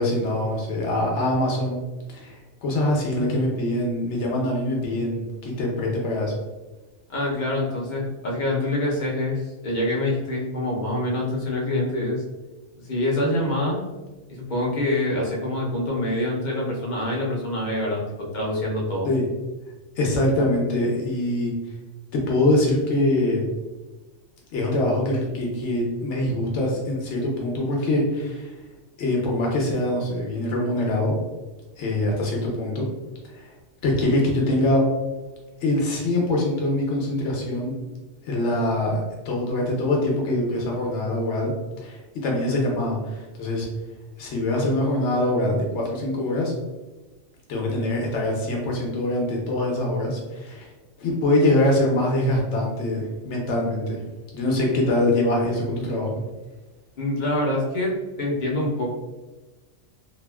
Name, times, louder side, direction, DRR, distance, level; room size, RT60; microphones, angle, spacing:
voice 1, 0.0-1.8 2.1-6.3 19.1-19.2 20.0-21.5 22.1-23.4 24.5-28.5 29.0-31.2 31.8-32.9 33.3-33.5 33.8-34.9 35.6-37.8 38.2-41.5 41.8-43.7 44.2-46.5 47.5-50.7 51.0-54.0 54.3-56.1, left 1 dB, 65° left, -1 dB, 1.0 m, -24 dB
voice 2, 7.1-12.2 12.8-13.8 14.3-19.1 57.0-57.9 58.2-58.9, left 1 dB, 45° left, -3 dB, 0.7 m, -25 dB
2.9 x 2.5 x 2.2 m, 1.2 s
omnidirectional pair, 1.3 m